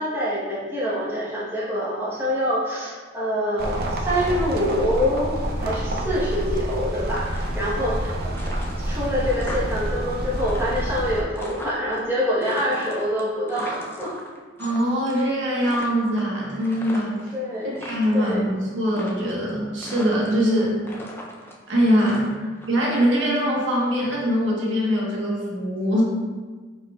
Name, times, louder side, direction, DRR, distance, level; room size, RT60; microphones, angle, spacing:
voice 1, 0.0-8.1 8.8-14.1 16.5-16.7 17.3-17.8 18.1-18.5 20.5-20.6, equal, 10° right, -9 dB, 1.0 m, -26 dB
sound 1, 3.6-11.2, right 1 dB, 50° right, 0.5 m, -28 dB
sound 2, 7.1-8.0 8.3-9.9 10.2-12.0 12.4-14.8 15.1-15.3 15.6-17.3 17.6-18.4 18.9-19.5 19.8-20.6 20.8-22.7, equal, 10° left, 0.5 m, -39 dB
voice 2, 14.6-17.3 17.8-20.7 21.7-22.4 22.7-26.0, equal, 75° right, -4 dB, 1.2 m, -22 dB
4.9 x 4.5 x 2.3 m, 1.4 s
head